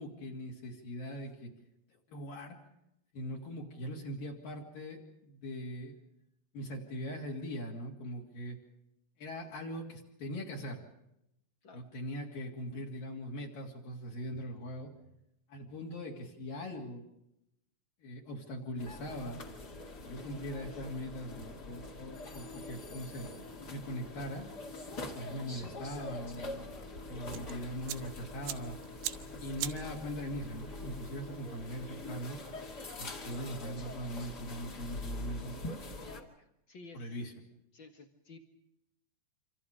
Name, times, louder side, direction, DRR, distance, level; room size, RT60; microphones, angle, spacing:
voice 1, 0.0-1.5 2.1-2.6 3.1-6.0 6.5-8.6 9.2-10.8 11.7-14.9 15.5-17.1 18.0-19.4 20.0-23.3 23.7-24.5 25.1-28.8 29.4-32.4 33.0-35.8 36.9-37.3, equal, 55° left, -2 dB, 4.2 m, -41 dB
sound 1, 18.8-36.2, left 2 dB, 30° left, 2.0 m, -44 dB
sound 2, 27.3-33.7, right 13 dB, 80° right, 3.4 m, -46 dB
voice 2, 35.9-37.2 37.7-38.4, left 3 dB, 80° left, 5 dB, 1.1 m, -53 dB
27.5 x 26.5 x 5.1 m, 0.85 s
omnidirectional pair, 5.1 m